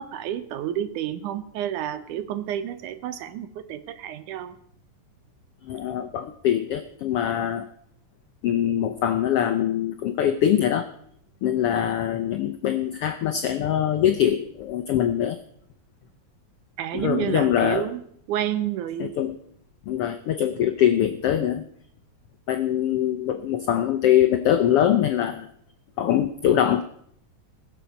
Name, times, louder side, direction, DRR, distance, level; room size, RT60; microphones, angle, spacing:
voice 1, 0.0-4.6 16.8-18.0 18.3-19.2, right 11 dB, 80° right, 12 dB, 2.4 m, -30 dB
voice 2, 5.6-7.7 8.4-10.9 11.4-15.4 16.9-17.8 19.0-19.3 19.9-21.6 22.5-25.5 26.0-26.8, left 10 dB, 80° left, 8 dB, 1.3 m, -23 dB
20.5 x 7.3 x 5.2 m, 0.66 s
omnidirectional pair, 3.6 m